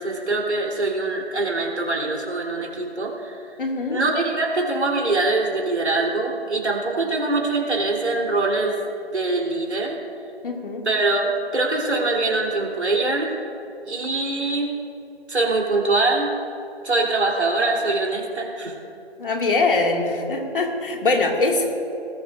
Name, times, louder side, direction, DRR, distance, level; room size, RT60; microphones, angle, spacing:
voice 1, 0.0-3.5 3.9-8.8 9.1-10.0 10.8-13.3 13.8-14.7 15.3-16.3 16.8-18.7, right 2 dB, 75° right, -1 dB, 3.2 m, -23 dB
voice 2, 3.6-4.0 10.4-10.9 19.2-21.7, left 3 dB, 50° left, 1 dB, 2.0 m, -22 dB
19.0 x 13.5 x 2.5 m, 2.9 s
figure-of-eight pair, 155°, 33 cm